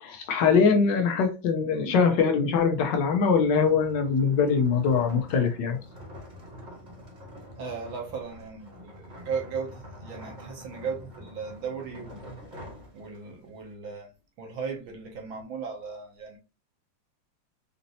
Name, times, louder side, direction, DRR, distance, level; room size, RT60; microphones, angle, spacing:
voice 1, 0.0-5.8, left 5 dB, 70° left, 1.3 m, -23 dB
sound 1, 2.5-13.5, left 1 dB, 25° right, 1.2 m, -46 dB
voice 2, 7.6-12.4 12.9-14.1 14.4-16.4, right 5 dB, 75° right, 1.8 m, -36 dB
5.2 x 2.7 x 2.7 m
omnidirectional pair, 2.2 m